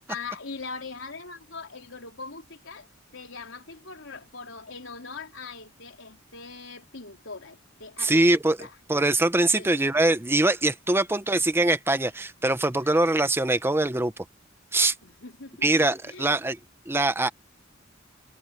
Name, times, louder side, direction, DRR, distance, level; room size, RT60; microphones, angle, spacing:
voice 1, 0.1-2.9 3.1-8.1 8.6-8.8 9.6-9.7 12.0-12.2 12.8-13.0 15.0-16.3, left 4 dB, 85° left, 3.7 m, -41 dB
voice 2, 8.0-14.1 14.7-14.9 15.6-16.6 16.9-17.3, right 2 dB, 10° right, 0.8 m, -23 dB
head